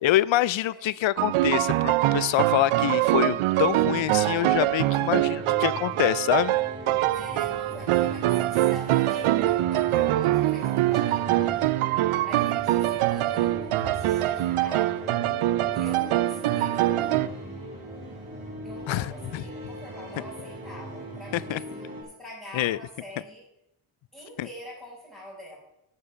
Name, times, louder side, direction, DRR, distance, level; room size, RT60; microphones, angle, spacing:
voice 1, 0.0-6.5 18.9-19.4 21.3-21.6 22.5-22.8 24.4-24.5, left 14 dB, 65° left, 20 dB, 0.6 m, -26 dB
sound 1, 1.2-17.3, right 15 dB, 85° right, 0.6 m, -24 dB
sound 2, 3.8-22.0, equal, 45° right, 5.8 m, -40 dB
voice 2, 7.1-11.8 12.2-15.0 15.7-17.4 18.6-23.4 24.1-25.6, equal, ahead, -10 dB, 5.8 m, -44 dB
Bowed string instrument, 13.8-17.2, right 4 dB, 65° right, 3.8 m, -47 dB
9.6 x 8.6 x 6.9 m, 0.80 s
cardioid pair, 105°, 49 cm